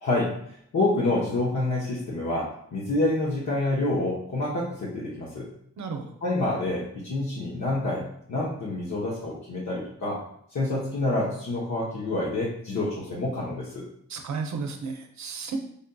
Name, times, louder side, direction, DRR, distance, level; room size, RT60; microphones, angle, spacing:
voice 1, 0.0-0.3 0.7-5.5 6.2-8.0 8.3-10.2 10.5-13.8, left 2 dB, 60° left, -6 dB, 0.9 m, -27 dB
voice 2, 14.1-15.6, right 5 dB, 60° right, 4 dB, 0.7 m, -33 dB
5.2 x 2.6 x 2.2 m, 0.69 s
cardioid pair, 70°, 32 cm